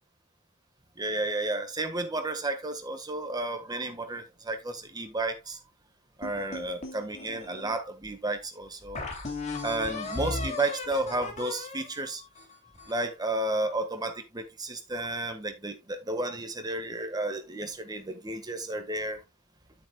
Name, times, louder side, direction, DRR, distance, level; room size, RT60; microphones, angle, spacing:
voice 1, 1.0-5.6 6.2-9.0 9.6-12.2 12.9-19.2, right 2 dB, 20° right, 1.4 m, -32 dB
sound 1, 6.2-7.8 8.3-8.4 8.9-13.1, left 3 dB, 35° left, 2.7 m, -37 dB
10.0 x 8.7 x 2.3 m
head